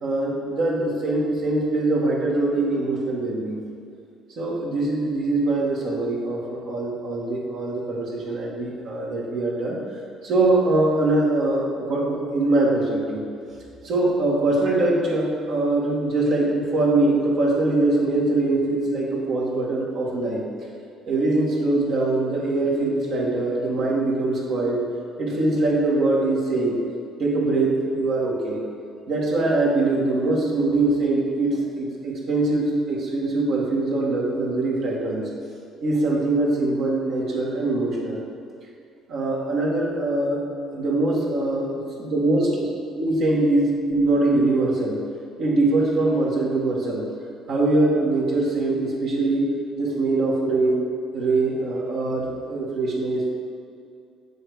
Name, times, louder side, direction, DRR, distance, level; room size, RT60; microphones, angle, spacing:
voice 1, 0.0-3.6 4.4-9.8 10.2-13.3 13.8-20.5 21.1-24.8 25.2-26.8 27.2-28.6 29.1-35.3 35.8-38.2 39.1-40.4 40.7-42.7 42.9-45.0 45.4-47.1 47.5-49.5 49.8-50.8 51.1-53.4, right 2 dB, 65° right, -4 dB, 1.8 m, -23 dB
7.6 x 3.5 x 6.2 m, 2.4 s
supercardioid pair, 65°, 0 cm